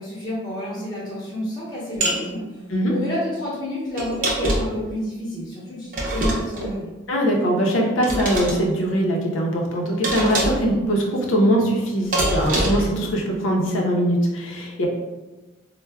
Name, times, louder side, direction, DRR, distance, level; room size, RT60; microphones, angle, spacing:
voice 1, 0.0-6.9, equal, 20° left, -6 dB, 0.8 m, -30 dB
sound 1, 2.0-2.2 4.0-4.8 5.9-6.7 8.0-8.6 10.0-10.7 12.1-12.9, right 1 dB, 45° right, 0.7 m, -23 dB
voice 2, 7.1-14.9, equal, 90° left, 0 dB, 0.6 m, -21 dB
4.5 x 2.1 x 2.2 m, 1.1 s
head